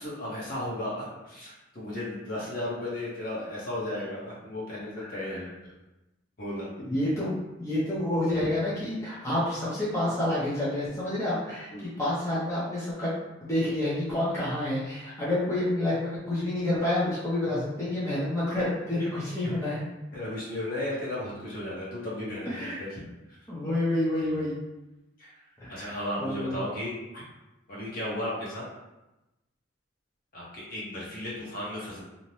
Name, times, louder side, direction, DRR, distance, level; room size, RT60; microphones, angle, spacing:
voice 1, 0.0-5.7 6.4-6.7 8.4-8.5 11.7-11.9 20.1-23.1 24.2-24.4 25.2-25.3 25.7-27.2 27.7-28.6 30.3-32.0, left 1 dB, 50° left, -6 dB, 0.9 m, -35 dB
voice 2, 6.8-11.7 12.0-13.1 13.4-19.8 22.5-22.8 23.5-24.6 25.6-26.7, left 1 dB, 15° left, -9 dB, 0.6 m, -29 dB
2.6 x 2.1 x 3.0 m, 0.99 s
head